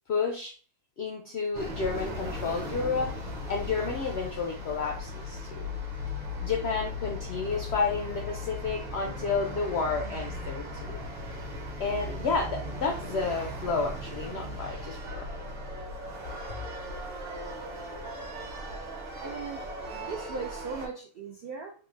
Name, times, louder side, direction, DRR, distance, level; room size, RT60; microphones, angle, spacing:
voice 1, 0.1-0.6 1.0-3.1 3.5-5.7 6.4-11.0 11.8-15.3, left 4 dB, 75° left, 1 dB, 0.6 m, -31 dB
sound 1, 1.5-20.9, left 1 dB, 35° right, 0.9 m, -37 dB
voice 2, 19.2-21.7, right 5 dB, 80° right, 1 dB, 0.5 m, -38 dB
3.4 x 2.1 x 3.1 m, 0.39 s
omnidirectional pair, 1.6 m